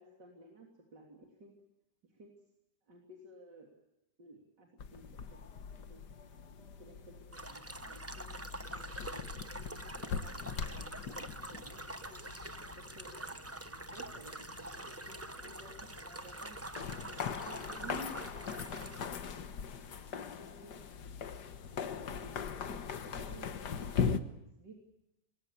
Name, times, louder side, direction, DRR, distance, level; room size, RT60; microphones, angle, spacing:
voice 1, 0.0-1.5 2.1-2.3 2.8-3.7 4.2-6.0 6.8-8.3 8.7-12.2 12.8-13.4 13.9-16.6 17.1-19.5 20.1-20.8 21.7-24.8, right 1 dB, 80° right, 0 dB, 3.9 m, -55 dB
sound 1, 4.8-24.2, left 6 dB, 75° left, 1.9 m, -41 dB
sound 2, 7.3-19.1, right 2 dB, 10° right, 0.8 m, -45 dB
26.5 x 22.0 x 8.3 m, 0.90 s
omnidirectional pair, 1.8 m